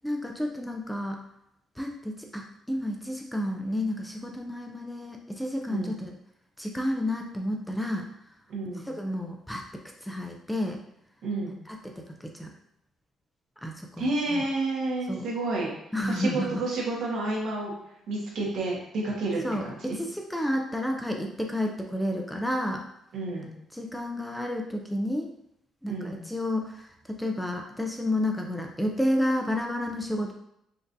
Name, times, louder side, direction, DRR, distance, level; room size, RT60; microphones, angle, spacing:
voice 1, 0.0-1.2 1.8-6.1 6.6-8.1 8.9-10.8 11.7-12.5 13.6-14.5 15.1-15.3 15.9-16.6 19.4-22.8 23.7-25.3 25.8-30.3, left 1 dB, ahead, 2 dB, 0.3 m, -31 dB
voice 2, 5.7-6.0 8.5-8.8 11.2-11.5 14.0-15.7 16.1-17.7 18.1-20.0 23.1-23.5 25.9-26.2, right 2 dB, 65° right, -3 dB, 1.3 m, -30 dB
5.2 x 2.6 x 2.6 m, 0.78 s
cardioid pair, 150°, 0 cm